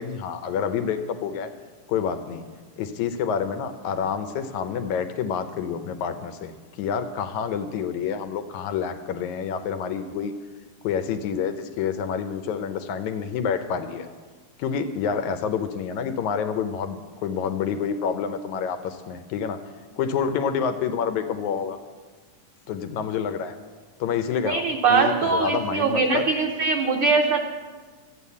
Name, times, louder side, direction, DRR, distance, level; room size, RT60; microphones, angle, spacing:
voice 1, 0.0-1.5 1.9-2.4 2.8-6.5 6.8-10.3 10.8-14.1 14.6-19.6 20.0-21.8 22.7-23.6 24.0-26.2, left 7 dB, 75° left, 8 dB, 2.0 m, -28 dB
voice 2, 24.4-27.4, right 4 dB, 85° right, 3 dB, 1.2 m, -22 dB
13.0 x 9.1 x 8.3 m, 1.4 s
omnidirectional pair, 3.7 m